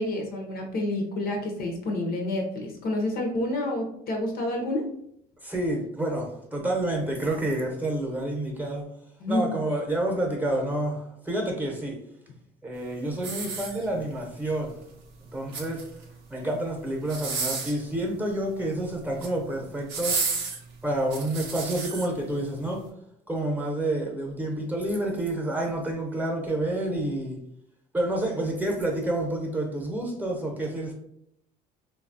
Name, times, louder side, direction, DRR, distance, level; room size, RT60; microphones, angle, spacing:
voice 1, 0.0-4.9 9.2-9.5, left 1 dB, 55° left, 2 dB, 0.7 m, -29 dB
voice 2, 5.4-8.8 9.3-12.0 12.6-14.7 15.3-15.8 16.3-20.2 20.8-22.8 23.3-27.4 27.9-30.9, right 1 dB, 10° right, 0 dB, 0.8 m, -29 dB
sound 1, 13.2-14.2 15.3-16.1 17.0-17.8 18.9-19.4 19.9-22.1 22.6-22.8, right 5 dB, 90° right, 0.6 m, -32 dB
3.0 x 2.3 x 2.6 m, 0.74 s
supercardioid pair, 85°, 18 cm